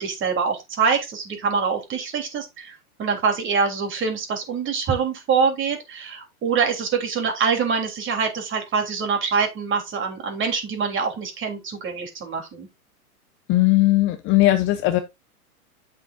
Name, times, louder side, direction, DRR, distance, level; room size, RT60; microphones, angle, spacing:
voice 1, 0.0-12.7, right 5 dB, 25° right, 3.4 m, -25 dB
voice 2, 13.5-15.0, left 17 dB, 25° left, 0.7 m, -18 dB
9.8 x 7.4 x 2.6 m
hypercardioid pair, 115°, 46 cm